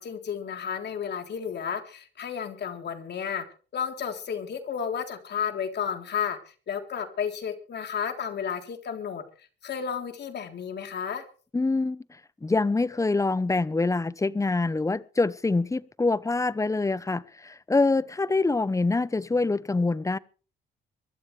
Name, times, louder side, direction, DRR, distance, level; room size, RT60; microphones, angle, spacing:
voice 1, 0.0-3.5 3.7-9.2 9.6-11.2, left 7 dB, 60° left, 3.7 m, -32 dB
voice 2, 11.5-12.0 12.4-20.2, left 3 dB, 15° left, 0.9 m, -25 dB
24.0 x 13.0 x 3.4 m
cardioid pair, 90°, 20 cm